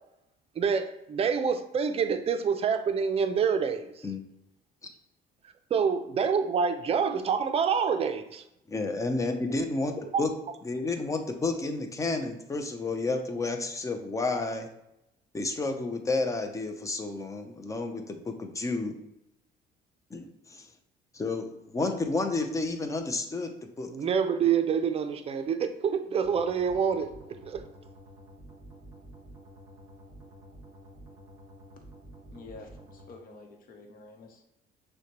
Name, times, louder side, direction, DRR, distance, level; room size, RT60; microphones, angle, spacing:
voice 1, 0.6-3.9 5.7-8.4 10.1-10.2 23.9-27.1 27.4-27.6, right 6 dB, 35° right, 0.5 m, -27 dB
voice 2, 8.7-10.3 10.6-14.7 15.3-18.9 20.1-20.7 21.1-23.9, left 3 dB, 20° left, 0.6 m, -31 dB
sound 1, 26.2-33.1, right 1 dB, 15° right, 1.3 m, -50 dB
voice 3, 32.3-34.4, left 3 dB, 60° left, 0.9 m, -48 dB
6.2 x 2.2 x 2.9 m
cardioid pair, 110°, 17 cm